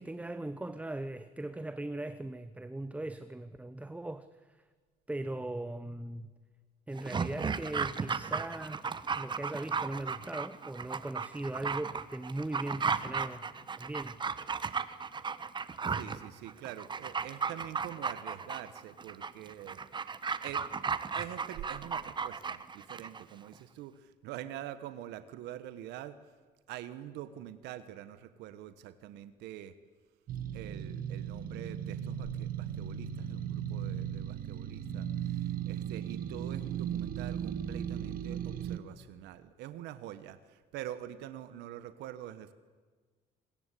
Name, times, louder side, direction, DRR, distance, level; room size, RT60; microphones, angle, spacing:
voice 1, 0.0-4.6 5.1-6.3 6.9-13.5 13.8-14.2, right 2 dB, 10° right, 12 dB, 0.8 m, -39 dB
Dog, 7.0-23.2 23.5-23.6, right 5 dB, 25° right, 1.1 m, -35 dB
voice 2, 15.8-19.8 20.4-20.7 21.1-26.2 26.7-29.8 30.5-42.5, right 12 dB, 85° right, 12 dB, 1.3 m, -45 dB
sound 1, 30.3-38.8, right 9 dB, 60° right, 1.6 m, -37 dB
25.0 x 21.0 x 8.4 m, 1.4 s
cardioid pair, 110°, 17 cm